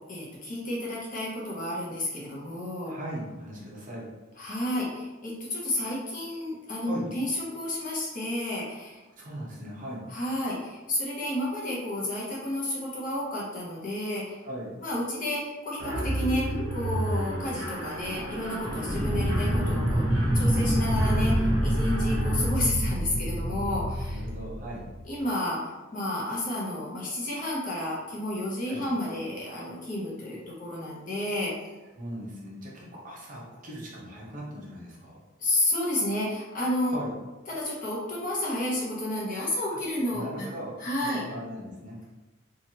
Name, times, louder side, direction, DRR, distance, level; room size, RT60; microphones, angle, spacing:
voice 1, 0.1-2.9 4.4-9.0 10.1-14.4 14.8-20.1 20.3-24.2 25.0-31.5 35.4-37.0 37.5-40.5 40.8-41.2, left 1 dB, 40° left, -5 dB, 0.8 m, -31 dB
voice 2, 2.9-4.1 6.8-7.1 9.2-10.0 14.4-14.7 24.1-24.9 28.7-28.9 32.0-35.2 36.9-37.1 39.7-39.8 40.1-40.7 41.0-42.0, right 1 dB, 40° right, -5 dB, 0.7 m, -39 dB
Mechanisms, 15.8-22.5, right 1 dB, 70° right, 0.9 m, -34 dB
sound 1, 18.7-25.1, equal, 10° right, 0.3 m, -26 dB
3.0 x 2.4 x 2.8 m, 1.1 s
head